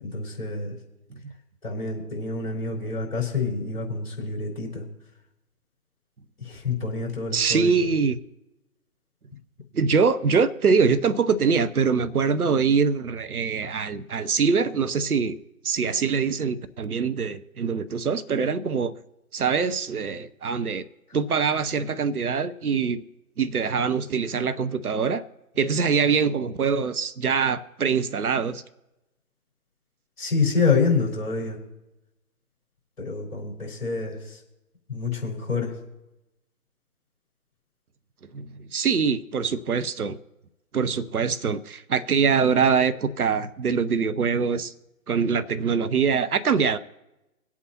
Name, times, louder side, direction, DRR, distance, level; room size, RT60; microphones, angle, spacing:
voice 1, 0.0-0.8 1.6-4.8 6.4-7.8 30.2-31.6 33.0-34.4 34.9-35.7, left 4 dB, 40° left, 4.2 m, -27 dB
voice 2, 7.3-8.2 9.7-15.4 15.6-18.9 19.3-20.8 21.1-23.0 23.4-25.2 25.6-28.6 38.3-40.2 40.7-44.7 45.1-46.8, right 5 dB, 80° right, 0.8 m, -23 dB
24.5 x 8.5 x 2.9 m
figure-of-eight pair, 140°, 44 cm